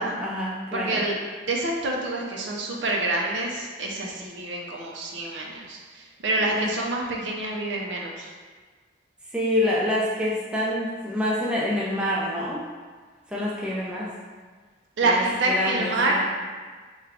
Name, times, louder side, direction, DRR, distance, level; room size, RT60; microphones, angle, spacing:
voice 1, 0.0-1.0 6.5-6.7 7.1-7.3 9.3-12.6 13.3-14.1 15.0-16.2, left 1 dB, 5° right, -6 dB, 0.5 m, -27 dB
voice 2, 0.7-8.3 15.0-16.2, right 2 dB, 75° right, -1 dB, 0.5 m, -27 dB
3.2 x 2.2 x 3.6 m, 1.5 s
head